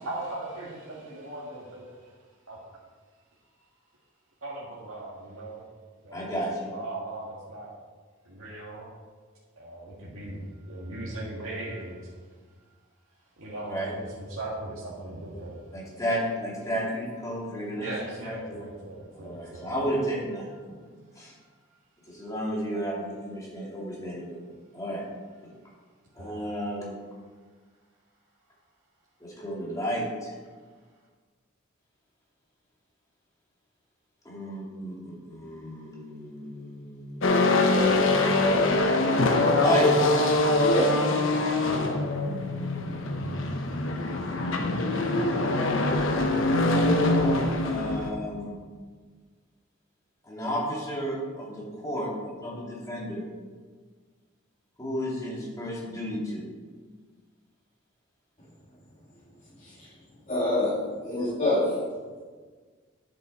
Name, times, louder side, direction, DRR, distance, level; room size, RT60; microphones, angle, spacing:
voice 1, 0.0-2.1 2.5-2.6 4.4-5.7 6.0-6.3 6.6-7.7 8.3-8.9 9.6-12.2 13.4-15.6 17.8-19.7 21.2-21.3 26.2-26.3, right 2 dB, 80° right, -6 dB, 1.7 m, -38 dB
voice 2, 6.1-6.7 13.6-13.9 15.7-18.7 19.1-20.9 21.2-21.3 22.1-24.4 24.7-25.0 26.2-26.9 29.2-30.3 34.2-38.2 39.5-39.9 47.0-48.5 50.2-53.3 54.8-56.4, equal, 15° left, -5 dB, 2.7 m, -33 dB
sound 1, 37.2-48.1, left 2 dB, 65° left, 1.0 m, -24 dB
voice 3, 60.3-60.7 61.0-61.6, left 1 dB, 35° left, -11 dB, 2.7 m, -25 dB
10.0 x 7.4 x 4.3 m, 1.5 s
head